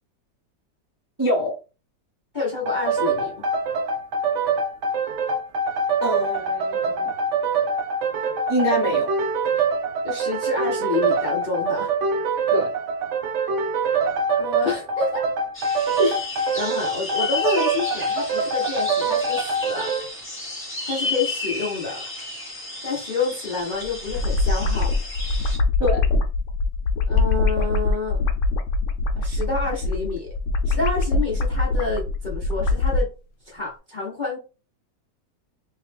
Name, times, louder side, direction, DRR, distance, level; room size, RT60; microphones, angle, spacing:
voice 1, 1.2-1.6 6.0-7.1 8.5-9.1 12.5-12.7 16.0-16.2 25.8-26.0, equal, 20° right, 0.5 m, -24 dB
voice 2, 2.3-3.4 10.0-11.9 14.4-15.2 16.6-19.9 20.9-22.1 22.8-24.9 27.1-28.2 29.1-30.3 30.7-33.1 33.5-34.4, left 4 dB, 40° left, 0.7 m, -28 dB
sound 1, 2.7-20.1, right 4 dB, 80° right, 0.6 m, -24 dB
sound 2, 15.5-25.6, left 2 dB, 10° left, 1.2 m, -33 dB
sound 3, 23.8-33.1, left 3 dB, 80° left, 1.2 m, -23 dB
3.1 x 2.8 x 3.3 m
omnidirectional pair, 1.9 m